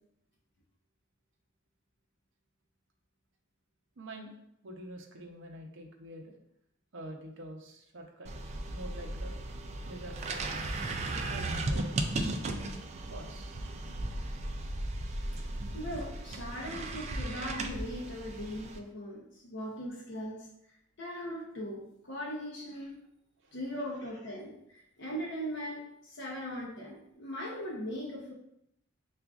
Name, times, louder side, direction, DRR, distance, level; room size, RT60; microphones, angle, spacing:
voice 1, 4.0-4.3 4.6-6.3 6.9-8.3 8.7-9.4 9.9-10.5 11.1-12.4 13.1-13.6 23.4-23.6, right 1 dB, 60° right, 1 dB, 0.7 m, -46 dB
sound 1, 8.3-18.8, right 2 dB, 35° right, 0.3 m, -36 dB
voice 2, 15.7-20.5 21.0-23.0 23.5-28.3, equal, 60° left, -3 dB, 0.7 m, -39 dB
5.9 x 2.5 x 2.3 m, 0.77 s
head